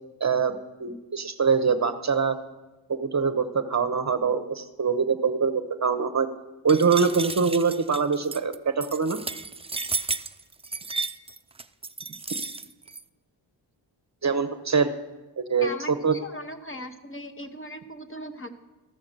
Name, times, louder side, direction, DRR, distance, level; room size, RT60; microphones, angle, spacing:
voice 1, 0.2-2.4 2.9-6.3 6.6-9.2 14.2-14.9 15.4-15.7 16.0-16.2, right 5 dB, 40° right, 9 dB, 0.7 m, -24 dB
sound 1, 6.7-13.0, right 4 dB, 15° right, 0.3 m, -33 dB
voice 2, 15.6-18.5, left 1 dB, 30° left, 7 dB, 1.0 m, -38 dB
14.0 x 5.9 x 6.5 m, 1.1 s
cardioid pair, 65°, 45 cm